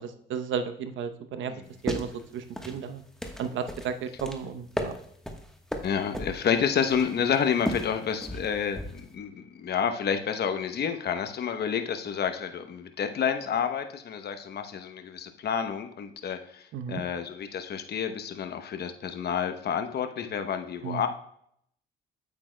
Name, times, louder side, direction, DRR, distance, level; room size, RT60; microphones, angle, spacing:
voice 1, 0.0-1.5 1.8-3.0 3.4-4.9 16.7-17.0 20.8-21.0, right 6 dB, 75° right, 9 dB, 0.8 m, -33 dB
sound 1, 1.6-9.1, equal, 5° left, 1.2 m, -37 dB
voice 2, 5.8-21.1, left 7 dB, 55° left, 7 dB, 0.9 m, -29 dB
8.6 x 8.5 x 2.2 m, 0.70 s
cardioid pair, 90°, 20 cm